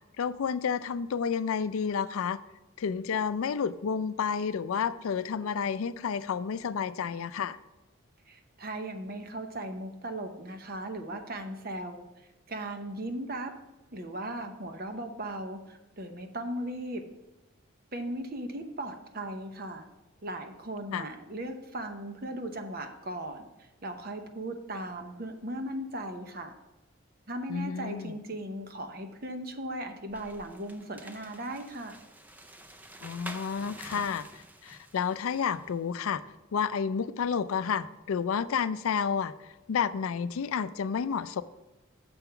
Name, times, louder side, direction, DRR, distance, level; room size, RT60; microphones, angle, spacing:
voice 1, 0.2-2.4 2.8-7.6 20.9-21.1 27.5-28.2 33.0-36.2 36.5-41.4, left 6 dB, 80° left, 14 dB, 0.4 m, -30 dB
voice 2, 8.3-13.5 13.9-17.0 17.9-19.9 20.2-26.5 27.3-32.0, right 1 dB, 45° right, 6 dB, 0.8 m, -37 dB
sound 1, 30.1-35.7, right 1 dB, 10° right, 0.4 m, -48 dB
7.0 x 5.7 x 5.7 m, 1.0 s
head